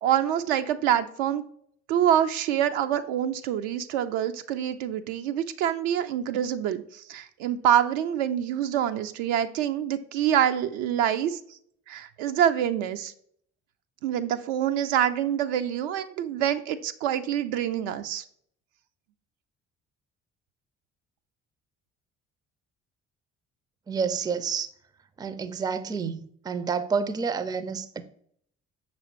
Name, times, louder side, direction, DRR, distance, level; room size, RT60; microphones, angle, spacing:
voice 1, 0.0-1.4 1.9-11.4 11.9-13.1 14.0-18.2, right 10 dB, 75° right, 0.5 m, -26 dB
voice 2, 23.9-24.7 25.2-28.0, right 5 dB, 10° right, 0.4 m, -29 dB
5.9 x 3.1 x 2.9 m
hypercardioid pair, 45°, 35 cm